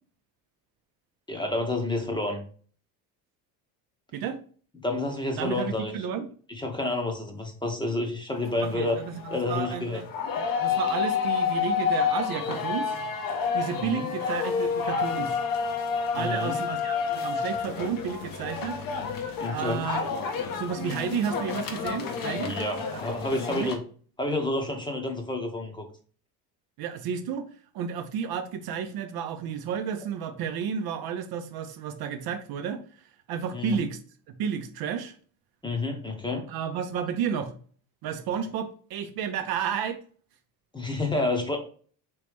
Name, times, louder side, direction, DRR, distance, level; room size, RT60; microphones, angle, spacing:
voice 1, 1.3-2.4 4.8-5.9 6.5-9.0 9.3-10.0 13.8-14.1 16.1-16.6 19.4-19.9 22.4-23.8 24.2-25.8 33.5-33.8 35.6-36.5 40.7-41.6, left 2 dB, 10° left, 3 dB, 0.8 m, -29 dB
voice 2, 5.4-6.3 8.7-10.1 10.6-13.0 13.5-15.4 16.1-18.8 19.5-20.1 20.5-22.5 23.5-23.7 26.8-27.5 27.7-34.0 34.3-35.1 36.5-37.5 38.0-40.0, right 7 dB, 55° right, 8 dB, 0.6 m, -32 dB
sound 1, 8.3-23.8, left 6 dB, 50° left, 0.8 m, -30 dB
3.1 x 3.0 x 3.4 m, 0.44 s
supercardioid pair, 100°, 44 cm